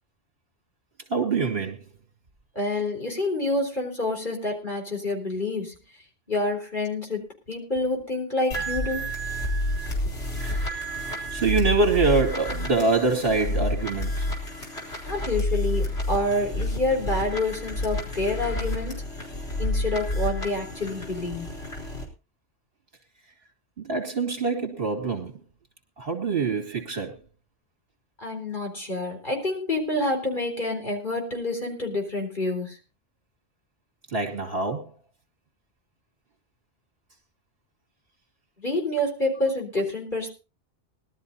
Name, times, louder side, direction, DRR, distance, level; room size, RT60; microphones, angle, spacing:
voice 1, 1.1-1.8 10.4-10.8 11.3-14.3 23.8-25.4 26.0-27.1 34.1-34.9, right 4 dB, 55° right, 3 dB, 2.7 m, -25 dB
voice 2, 2.6-5.8 6.3-9.1 15.0-19.0 19.6-21.6 28.2-32.8 38.6-40.3, left 2 dB, 45° left, 2 dB, 4.2 m, -28 dB
sound 1, 8.5-22.0, left 1 dB, 60° left, 4.4 m, -29 dB
21.0 x 12.5 x 2.7 m, 0.30 s
omnidirectional pair, 1.2 m